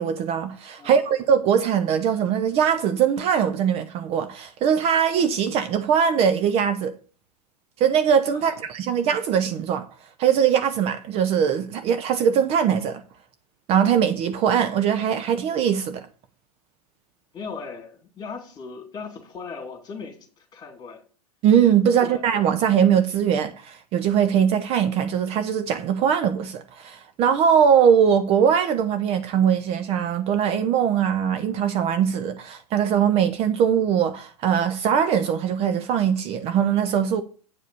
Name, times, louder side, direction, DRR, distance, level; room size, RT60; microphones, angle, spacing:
voice 1, 0.0-6.9 7.8-9.9 10.2-13.0 13.7-16.0 21.4-37.2, right 8 dB, 30° right, 0.7 m, -21 dB
voice 2, 17.3-21.0 21.9-22.2, left 5 dB, 20° left, 2.6 m, -38 dB
8.3 x 4.8 x 6.9 m
figure-of-eight pair, 95°, 20 cm